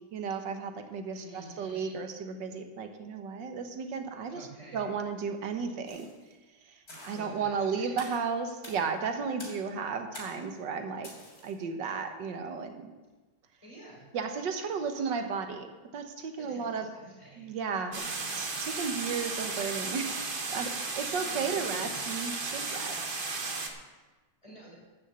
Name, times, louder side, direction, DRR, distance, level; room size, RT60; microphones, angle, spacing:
voice 1, 0.1-4.5 4.7-6.1 6.7-6.8 7.0-11.1 11.4-12.9 14.1-15.7 15.9-16.9 17.4-18.0 18.4-23.2, right 5 dB, 65° right, 6 dB, 1.7 m, -34 dB
voice 2, 1.2-2.0 4.3-4.9 7.0-8.0 13.6-14.0 14.7-15.2 16.4-17.5 17.8-18.3 21.2-22.0 24.4-24.8, right 1 dB, 15° left, -6 dB, 5.0 m, -50 dB
sound 1, 5.9-6.2 6.9-7.3 8.0-8.2 8.6-8.8 9.4-9.7 10.1-10.5 11.0-11.5, left 1 dB, 45° left, 4.3 m, -46 dB
sound 2, 17.9-23.7, right 3 dB, 35° right, 1.0 m, -34 dB
12.5 x 6.4 x 8.1 m, 1.2 s
omnidirectional pair, 2.2 m